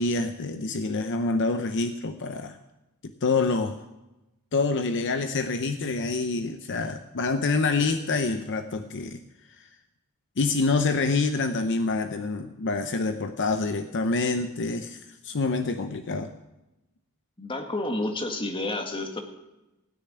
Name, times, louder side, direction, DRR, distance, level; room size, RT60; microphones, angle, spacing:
voice 1, 0.0-2.6 3.2-3.8 4.5-9.2 9.6-9.7 10.4-16.3, left 3 dB, 55° left, 9 dB, 0.7 m, -26 dB
voice 2, 17.4-19.2, left 2 dB, 25° left, 4 dB, 1.7 m, -30 dB
16.5 x 6.8 x 9.8 m, 1.0 s
head